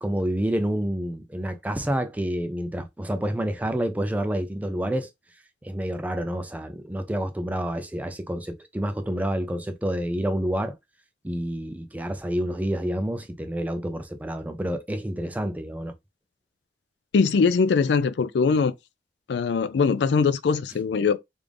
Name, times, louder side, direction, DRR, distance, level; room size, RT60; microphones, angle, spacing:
voice 1, 0.0-5.1 5.6-10.8 11.2-15.9, equal, 10° right, 0.3 m, -28 dB
voice 2, 17.1-18.7 19.3-21.2, left 5 dB, 80° left, 0.4 m, -21 dB
3.5 x 2.5 x 3.3 m
head